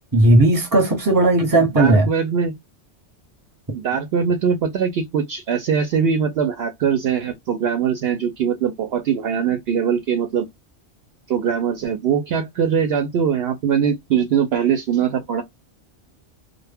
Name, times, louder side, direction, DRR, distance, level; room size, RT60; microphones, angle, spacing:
voice 1, 0.1-2.1, right 2 dB, 20° right, 0.9 m, -15 dB
voice 2, 1.8-2.5 3.7-10.5 11.3-15.4, right 7 dB, 65° right, 0.7 m, -21 dB
2.1 x 2.1 x 3.3 m
omnidirectional pair, 1.2 m